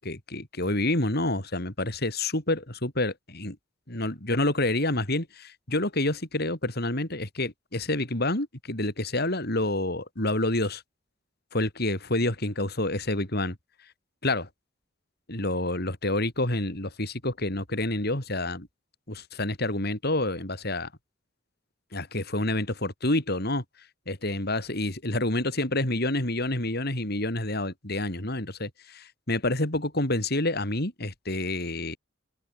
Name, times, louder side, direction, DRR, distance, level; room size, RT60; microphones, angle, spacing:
voice 1, 0.0-3.6 3.9-10.8 11.5-13.6 14.2-14.5 15.3-18.7 19.1-20.9 21.9-23.6 24.1-32.0, left 2 dB, 55° left, 5.7 m, -28 dB
open air
head